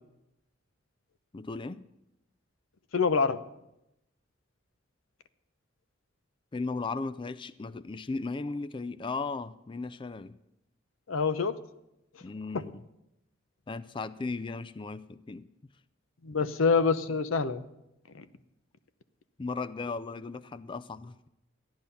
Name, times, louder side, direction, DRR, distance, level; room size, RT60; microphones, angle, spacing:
voice 1, 1.3-1.8 6.5-10.4 12.2-12.8 13.7-15.5 16.4-16.5 19.4-21.3, left 3 dB, 25° left, 0.4 m, -36 dB
voice 2, 2.9-3.4 11.1-11.6 12.5-12.7 16.2-17.6 18.2-18.3, left 5 dB, 90° left, 0.7 m, -26 dB
14.0 x 10.5 x 5.6 m
head